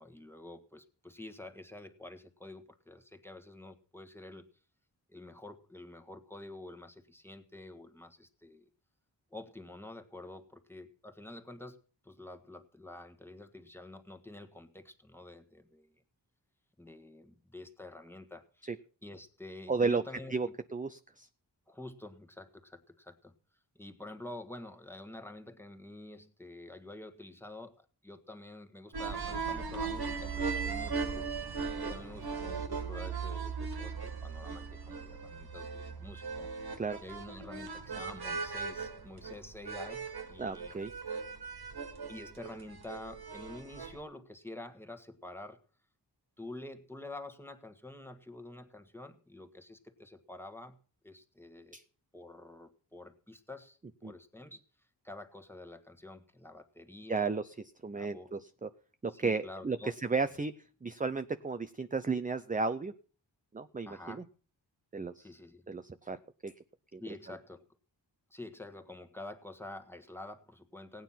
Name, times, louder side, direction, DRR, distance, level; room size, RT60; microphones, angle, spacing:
voice 1, 0.0-4.5 5.1-8.7 9.3-15.9 16.8-18.7 19.0-20.3 21.7-23.3 23.7-31.3 31.8-36.5 37.0-40.8 42.1-45.6 46.4-50.8 51.0-51.8 52.1-54.6 55.0-57.3 57.9-58.3 59.1-59.9 63.8-64.3 65.2-65.6 67.0-67.6 68.3-71.0, left 2 dB, 5° left, 6 dB, 1.5 m, -48 dB
voice 2, 19.7-20.0 20.3-21.3 31.8-31.9 36.7-37.0 40.4-40.9 51.7-51.8 54.0-54.1 57.1-57.5 57.8-58.7 59.0-60.5 60.8-62.9 63.5-64.2 64.9-65.3 65.7-66.5 66.9-67.0, right 4 dB, 20° right, 10 dB, 0.6 m, -34 dB
sound 1, 28.9-44.0, right 5 dB, 55° right, 1.7 m, -38 dB
17.5 x 9.3 x 5.8 m, 0.40 s
wide cardioid pair, 100°, 44 cm